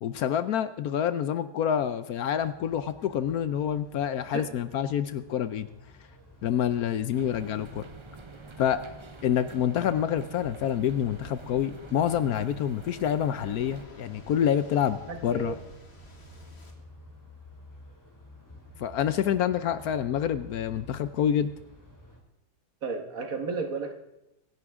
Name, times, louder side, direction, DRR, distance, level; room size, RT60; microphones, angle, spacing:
voice 1, 0.0-5.7 6.4-7.9 8.6-8.8 9.2-15.5 18.8-21.5, left 9 dB, 70° left, 13 dB, 1.0 m, -27 dB
sound 1, 2.4-22.2, equal, 10° left, 2.6 m, -52 dB
sound 2, 7.1-13.9, right 4 dB, 35° right, 0.4 m, -47 dB
Waves surf, 10.8-16.7, left 2 dB, 40° left, 2.2 m, -52 dB
voice 2, 15.1-15.6 22.8-23.9, right 4 dB, 55° right, 5 dB, 1.9 m, -33 dB
25.0 x 11.0 x 3.6 m, 0.88 s
omnidirectional pair, 1.8 m